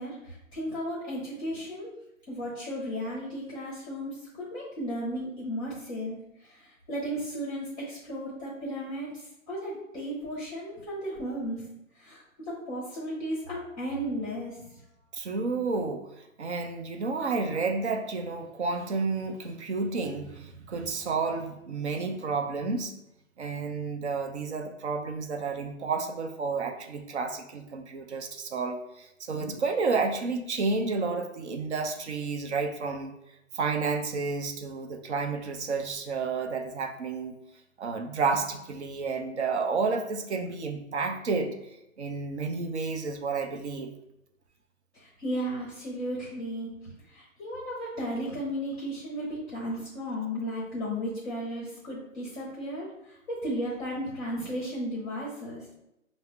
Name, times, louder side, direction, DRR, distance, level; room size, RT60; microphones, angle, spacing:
voice 1, 0.0-1.9 2.3-6.2 6.4-11.6 11.9-14.7 44.9-46.7 47.1-52.9 53.3-55.6, equal, 10° left, -5 dB, 0.7 m, -34 dB
voice 2, 15.1-22.9 23.4-33.1 33.5-37.3 37.8-41.5 42.0-43.9, right 4 dB, 60° right, 5 dB, 0.6 m, -31 dB
5.2 x 2.0 x 3.5 m, 0.85 s
figure-of-eight pair, 135°, 40 cm